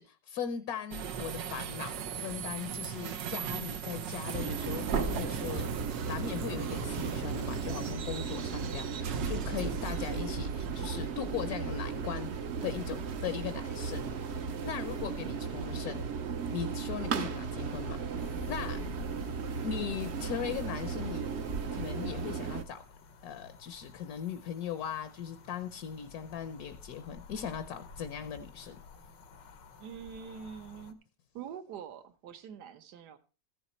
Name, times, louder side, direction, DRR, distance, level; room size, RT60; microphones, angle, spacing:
voice 1, 0.0-5.7 6.1-16.0 16.5-18.8 19.6-21.3 21.7-22.8 23.2-28.8, left 8 dB, 65° left, 11 dB, 1.1 m, -39 dB
sound 1, 0.9-14.3, right 7 dB, 85° right, 1.6 m, -39 dB
sound 2, 4.3-22.6, right 5 dB, 55° right, 0.8 m, -35 dB
sound 3, 18.2-30.9, left 5 dB, 85° left, 1.8 m, -51 dB
voice 2, 29.8-31.0 31.3-33.2, right 7 dB, 70° right, 10 dB, 1.5 m, -45 dB
14.5 x 7.1 x 4.3 m, 0.34 s
omnidirectional pair, 1.9 m